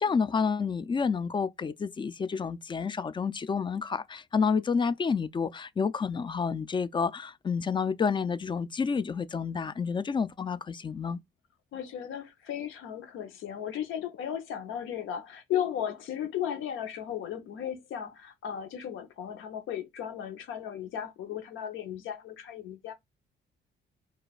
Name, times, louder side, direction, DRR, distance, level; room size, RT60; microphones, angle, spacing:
voice 1, 0.0-11.2, left 5 dB, 25° left, 0.3 m, -29 dB
voice 2, 11.7-22.9, left 9 dB, 85° left, 0.7 m, -35 dB
2.4 x 2.2 x 3.9 m
cardioid pair, 90°, 20 cm